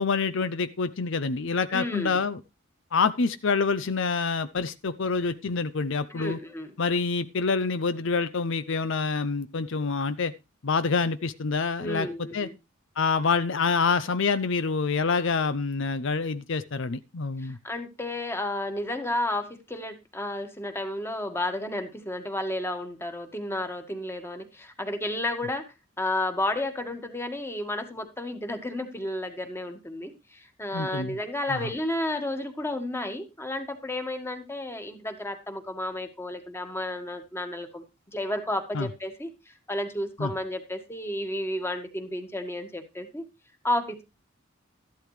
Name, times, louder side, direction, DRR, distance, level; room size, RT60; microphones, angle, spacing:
voice 1, 0.0-2.4 2.9-6.4 6.8-10.3 10.6-12.1 12.3-12.5 13.0-17.6 30.7-31.2 31.5-31.6 38.7-38.9 40.2-40.3, left 4 dB, 65° left, 0.6 m, -26 dB
voice 2, 1.7-2.2 6.1-6.7 11.8-12.6 17.4-25.6 26.0-37.8 38.1-43.2 43.6-44.0, left 1 dB, 10° left, 1.7 m, -32 dB
13.5 x 11.5 x 3.3 m
head